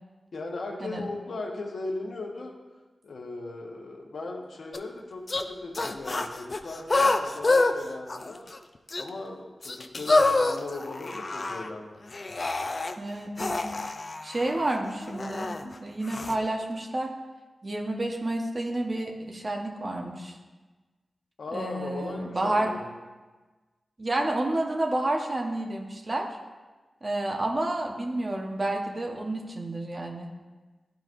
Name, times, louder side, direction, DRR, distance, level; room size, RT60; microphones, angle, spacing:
voice 1, 0.3-2.5 3.0-8.4 9.0-11.9 21.4-22.9, left 2 dB, 80° left, 0 dB, 1.0 m, -37 dB
sound 1, 4.7-4.8 5.3-5.5 5.7-7.7 8.1-8.6 8.9-9.0 9.6-11.7 12.1-13.0 13.4-15.6 16.1-16.3, left 2 dB, 50° left, 0.5 m, -27 dB
voice 2, 13.0-13.7 14.2-17.1 17.6-20.4 21.5-22.7 24.0-26.3 27.0-30.3, right 1 dB, 45° right, 1 dB, 1.1 m, -30 dB
11.5 x 4.7 x 2.6 m, 1.3 s
cardioid pair, 40°, 0 cm